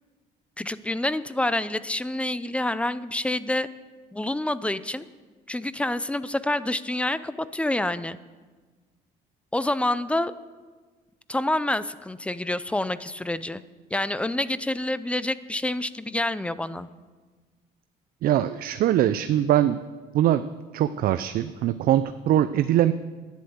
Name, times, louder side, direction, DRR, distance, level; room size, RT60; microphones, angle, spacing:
voice 1, 0.6-3.7 4.1-5.1 5.5-8.2 9.5-10.3 11.3-13.6 13.9-16.9, left 1 dB, 5° left, 15 dB, 0.5 m, -27 dB
voice 2, 18.2-19.8 20.1-20.4 20.7-22.9, right 12 dB, 60° right, 11 dB, 0.5 m, -22 dB
11.5 x 10.5 x 7.9 m, 1.4 s
cardioid pair, 110°, 17 cm